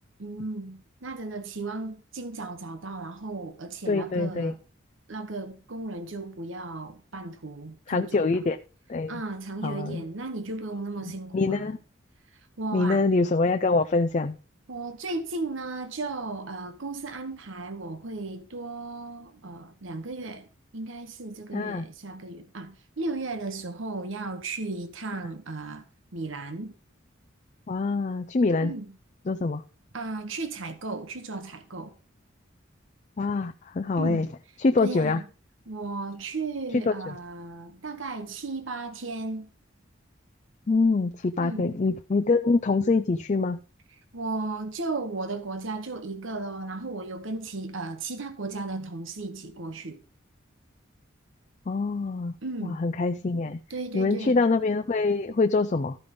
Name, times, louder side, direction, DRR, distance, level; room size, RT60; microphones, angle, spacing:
voice 1, 0.2-4.6 5.1-8.5 9.1-11.8 12.6-13.0 14.7-20.5 20.7-25.8 26.1-26.7 28.6-28.9 29.9-31.9 34.0-34.3 34.8-35.2 35.7-39.5 41.4-41.8 44.1-50.0 52.4-52.8 53.7-54.4, right 3 dB, 75° right, 1.1 m, -35 dB
voice 2, 3.9-4.5 7.9-8.6 8.9-9.2 9.6-10.0 11.3-11.8 12.7-14.4 21.5-21.8 27.7-28.7 29.3-29.6 33.2-34.3 34.6-35.2 36.9-37.0 40.7-43.6 51.7-52.4 52.6-53.6 53.9-56.0, left 3 dB, 35° left, 0.4 m, -24 dB
13.5 x 5.2 x 5.2 m
head